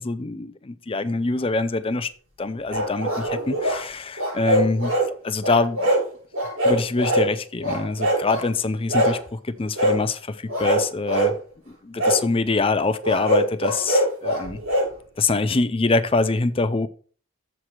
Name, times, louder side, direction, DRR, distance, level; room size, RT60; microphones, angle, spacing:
voice 1, 0.0-2.1 2.4-4.9 5.2-5.8 6.6-11.3 11.7-14.6 15.2-16.9, left 3 dB, 25° left, 0.5 m, -24 dB
sound 1, 2.7-3.8 4.2-5.1 5.4-6.0 6.3-7.3 7.6-8.5 8.9-9.2 9.8-10.0 10.5-11.3 12.0-12.2 13.0-14.9, right 1 dB, 75° right, 5.0 m, -22 dB
7.3 x 4.8 x 6.1 m
head